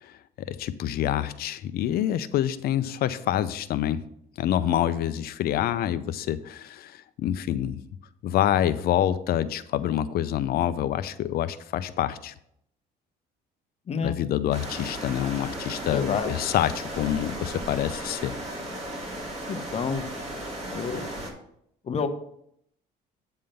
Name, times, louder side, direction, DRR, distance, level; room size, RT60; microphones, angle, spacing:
voice 1, 0.0-4.0 4.4-7.8 8.2-12.3 14.0-18.3, left 11 dB, 65° left, 14 dB, 0.5 m, -27 dB
voice 2, 13.9-14.2 15.8-16.4 19.5-20.1 20.7-21.1 21.8-22.1, left 5 dB, 40° left, 7 dB, 1.0 m, -29 dB
sound 1, 14.5-21.3, right 1 dB, 40° right, 3.2 m, -36 dB
8.8 x 3.7 x 6.6 m, 0.72 s
cardioid pair, 110°, 17 cm